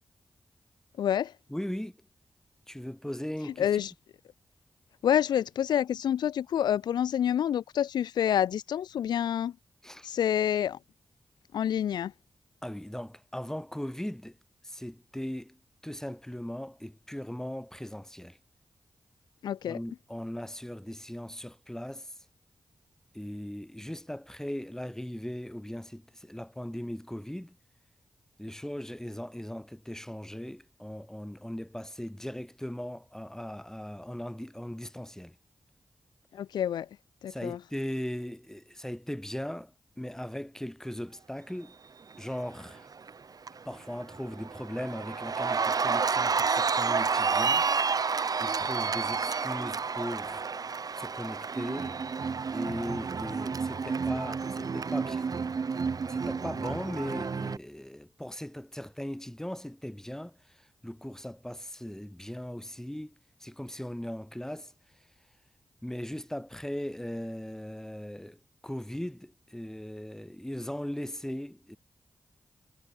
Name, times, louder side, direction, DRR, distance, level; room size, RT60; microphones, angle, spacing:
voice 1, 1.0-1.3 3.6-3.9 5.0-9.5 10.0-10.8 11.5-12.1 19.4-19.8 36.3-36.9 37.2-37.6, left 10 dB, 90° left, 0.4 m, -28 dB
voice 2, 1.5-2.0 2.7-3.7 9.8-10.1 12.6-14.4 14.6-18.4 19.6-22.1 23.1-27.6 28.4-35.3 37.3-41.7 42.2-42.9 43.6-47.7 48.4-50.4 50.9-52.0 52.5-55.3 56.1-63.1 63.4-64.7 65.8-71.8, equal, 5° left, 2.9 m, -38 dB
Cheering, 42.7-43.1 43.5-57.6, right 5 dB, 60° right, 1.1 m, -30 dB
cardioid pair, 40°, 7 cm